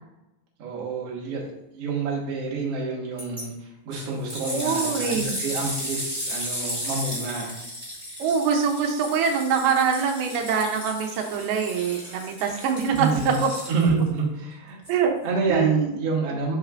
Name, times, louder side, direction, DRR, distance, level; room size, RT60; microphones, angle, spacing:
voice 1, 0.6-7.5 13.0-13.4 13.7-14.8 15.2-16.5, right 4 dB, 50° right, -3 dB, 2.1 m, -28 dB
sound 1, 3.2-3.4 3.9-14.1 14.8-14.9, equal, 10° right, 1.3 m, -34 dB
voice 2, 4.5-5.4 8.2-13.5 14.9-15.2 15.5-15.9, right 6 dB, 85° right, 3 dB, 2.6 m, -24 dB
8.3 x 5.7 x 2.5 m, 0.91 s
omnidirectional pair, 4.3 m